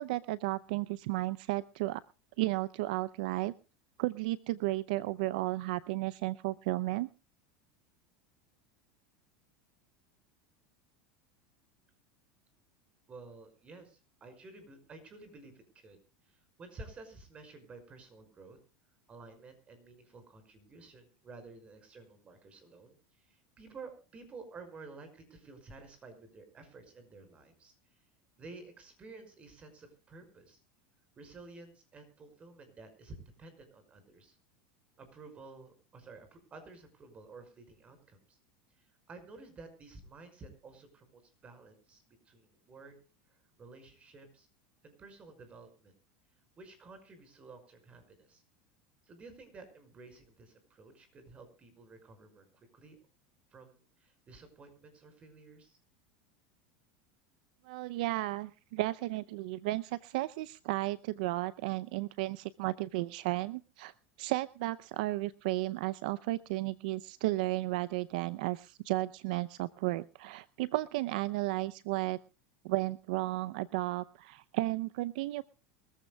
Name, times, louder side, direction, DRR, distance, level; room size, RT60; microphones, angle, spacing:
voice 1, 0.0-2.0 2.4-3.5 4.0-7.1 57.7-63.9 64.2-72.2 72.6-75.4, right 18 dB, 70° right, 16 dB, 0.6 m, -33 dB
voice 2, 13.1-18.6 19.1-28.0 28.4-30.6 31.2-34.4 35.0-38.4 38.8-42.9 43.3-44.5 44.8-45.9 46.6-48.4 49.0-53.0 53.5-55.8, right 3 dB, 25° right, 8 dB, 5.6 m, -52 dB
23.5 x 14.5 x 2.3 m, 0.34 s
supercardioid pair, 125°, 5 cm